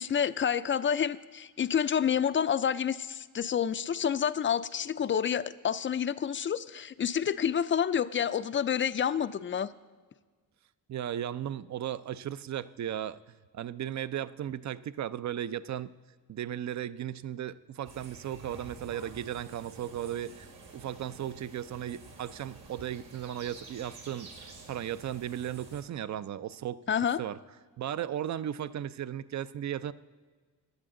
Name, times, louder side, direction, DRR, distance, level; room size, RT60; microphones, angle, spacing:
voice 1, 0.0-9.7 26.9-27.2, left 8 dB, 35° left, 14 dB, 0.4 m, -28 dB
voice 2, 10.9-13.2 13.5-15.9 16.3-20.5 20.7-26.8 27.2-27.4 27.8-29.9, right 10 dB, 50° right, 16 dB, 0.4 m, -36 dB
sound 1, 17.8-25.8, right 3 dB, 90° right, 2.4 m, -50 dB
15.5 x 11.0 x 3.7 m, 1.4 s
wide cardioid pair, 135°, 37 cm